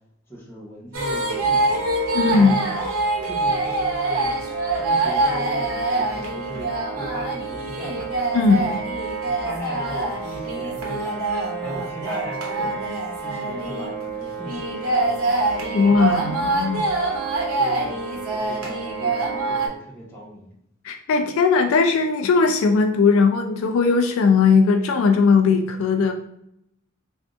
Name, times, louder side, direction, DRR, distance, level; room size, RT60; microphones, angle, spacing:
voice 1, 0.3-1.8 2.3-2.7 3.2-8.1 8.5-8.7 9.3-11.3 11.6-15.4 15.9-16.5 17.2-20.5, equal, 10° left, -5 dB, 0.9 m, -38 dB
sound 1, 0.9-19.7, right 2 dB, 85° right, 0.8 m, -25 dB
voice 2, 2.1-2.6 8.3-8.6 15.7-16.9 20.8-26.1, left 4 dB, 75° left, 5 dB, 0.3 m, -18 dB
3.5 x 2.5 x 2.4 m, 0.76 s
head